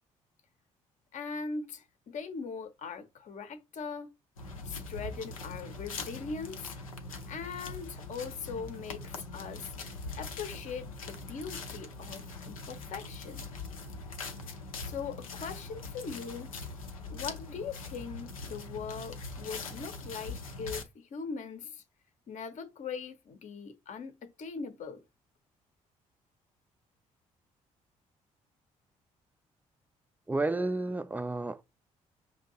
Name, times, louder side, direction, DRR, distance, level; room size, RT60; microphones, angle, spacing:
voice 1, 1.1-4.1 4.6-6.8 7.3-9.8 10.2-13.4 14.8-16.5 17.1-21.8 22.3-25.0, left 5 dB, 45° left, 0.7 m, -40 dB
sound 1, 4.4-20.8, left 3 dB, 85° left, 0.5 m, -42 dB
voice 2, 30.3-31.6, right 2 dB, 10° right, 0.4 m, -31 dB
5.8 x 2.6 x 2.8 m
figure-of-eight pair, 45°, 17 cm